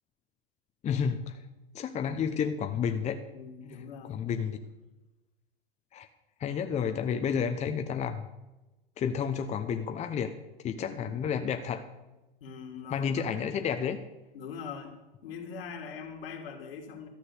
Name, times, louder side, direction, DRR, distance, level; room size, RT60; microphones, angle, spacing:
voice 1, 0.8-1.4 1.7-3.2 4.1-4.6 5.9-6.1 6.4-8.2 9.0-10.3 10.6-11.9 12.9-14.0, left 7 dB, 25° left, 7 dB, 0.8 m, -30 dB
voice 2, 3.3-4.2 10.7-11.2 12.4-13.4 14.3-14.9 15.2-17.1, left 6 dB, 70° left, 3 dB, 2.7 m, -42 dB
13.0 x 6.1 x 8.3 m, 1.1 s
hypercardioid pair, 105°, 30 cm